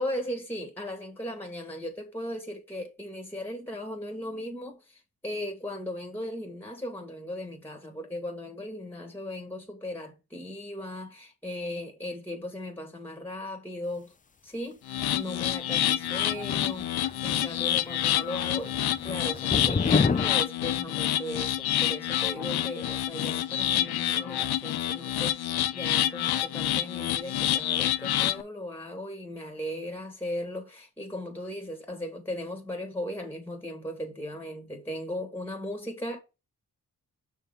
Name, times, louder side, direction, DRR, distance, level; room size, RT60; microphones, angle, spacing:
voice 1, 0.0-14.1 14.4-14.8 15.1-16.9 17.2-36.2, left 1 dB, 5° left, 1.4 m, -37 dB
sound 1, 14.9-28.4, left 12 dB, 85° left, 0.5 m, -28 dB
sound 2, 16.1-17.6 17.9-18.2 18.5-20.3, left 5 dB, 25° left, 0.4 m, -28 dB
5.8 x 3.6 x 5.5 m
cardioid pair, 65°, 37 cm